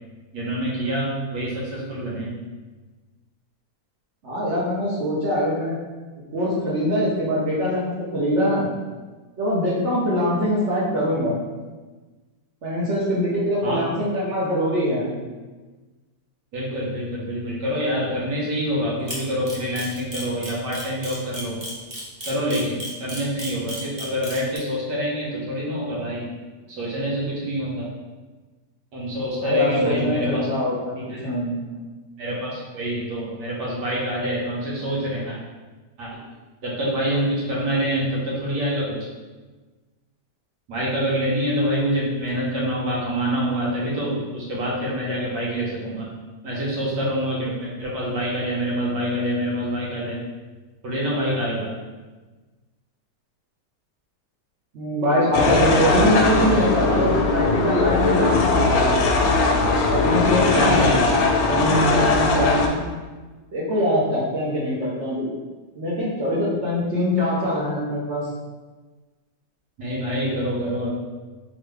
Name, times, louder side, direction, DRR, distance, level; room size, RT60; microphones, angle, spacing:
voice 1, 0.3-2.3 13.6-13.8 16.5-21.6 22.3-26.3 26.7-27.9 28.9-30.5 31.1-31.3 32.2-35.4 36.0-36.2 36.6-39.1 40.7-46.1 46.4-50.2 50.8-51.7 55.3-55.8 56.3-56.6 60.5-61.0 69.8-70.9, equal, 90° right, -5 dB, 1.7 m, -26 dB
voice 2, 4.2-5.8 6.3-8.7 9.4-11.4 12.6-15.2 29.4-31.6 54.7-59.0 59.9-60.9 61.4-62.8 63.5-65.3 65.7-68.3, equal, 55° right, -5 dB, 1.0 m, -23 dB
Camera, 19.1-24.6, equal, 25° right, 0.6 m, -33 dB
sound 1, 55.3-62.7, left 3 dB, 70° left, 0.9 m, -20 dB
3.9 x 3.1 x 3.3 m, 1.3 s
omnidirectional pair, 1.8 m